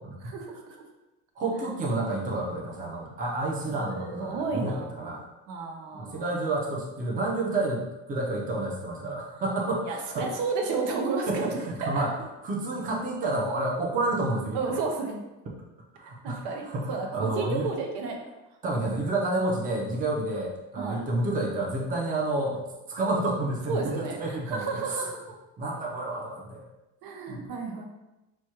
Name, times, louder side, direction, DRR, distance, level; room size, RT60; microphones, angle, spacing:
voice 1, 0.2-0.8 3.8-4.9 5.5-6.3 9.9-12.0 14.5-15.2 16.0-18.3 20.8-21.0 23.7-25.2 27.0-27.9, right 4 dB, 75° right, 2 dB, 0.8 m, -32 dB
voice 2, 1.4-5.2 6.0-10.3 11.3-12.1 12.4-14.8 16.0-17.7 18.6-22.6 22.9-25.0 25.6-26.6 27.3-27.4, right 2 dB, 25° right, -2 dB, 0.8 m, -30 dB
6.0 x 2.3 x 3.0 m, 0.99 s
cardioid pair, 160°, 31 cm